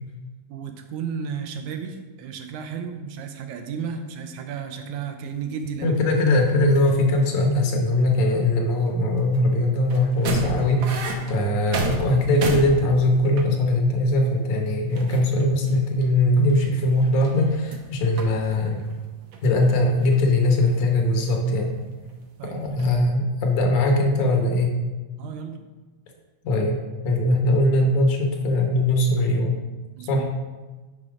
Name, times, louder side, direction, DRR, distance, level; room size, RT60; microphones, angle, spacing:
voice 1, 0.5-5.9 22.4-22.6 22.9-23.0 25.2-25.6 30.0-30.2, right 6 dB, 90° right, 6 dB, 2.2 m, -33 dB
sound 1, 5.3-6.1 6.6-7.7 8.0-9.4 9.9-13.9 14.3-14.4 14.6-15.7 16.0-17.9 18.2-19.0 19.3-20.2 20.7-22.1 22.6-22.9, right 3 dB, 75° right, 1.1 m, -33 dB
voice 2, 5.8-18.8 19.4-21.8 22.5-24.8 26.4-26.8 27.0-29.6 30.1-30.3, left 1 dB, 85° left, 2 dB, 2.6 m, -21 dB
10.5 x 4.3 x 4.9 m, 1.3 s
omnidirectional pair, 3.3 m